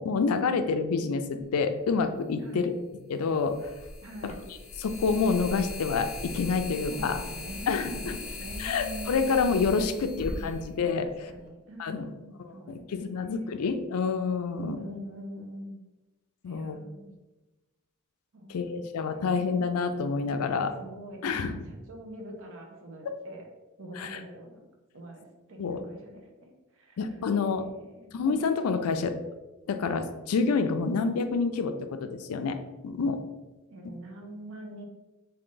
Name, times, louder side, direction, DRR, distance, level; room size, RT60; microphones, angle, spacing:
voice 1, 0.0-2.7 3.1-3.6 4.2-4.3 4.8-7.2 7.7-8.2 8.6-11.3 11.8-12.1 12.4-14.8 16.4-16.8 18.5-20.7 21.2-21.5 23.0-23.1 24.0-24.2 25.6-25.8 27.0-27.7 28.1-29.2 29.7-32.6 32.8-33.3, left 4 dB, 80° left, 8 dB, 0.4 m, -28 dB
sound 1, 2.0-2.1 3.4-11.4, left 2 dB, 35° left, 0.8 m, -39 dB
voice 2, 2.4-2.8 4.0-4.4 6.9-9.3 9.9-10.6 11.3-13.6 14.6-15.8 16.5-17.1 18.3-19.6 20.4-23.5 23.8-24.7 24.9-27.0 27.4-27.6 27.9-28.1 33.7-34.9, right 1 dB, 65° right, 2 dB, 0.7 m, -44 dB
3.7 x 2.6 x 3.8 m, 1.1 s
head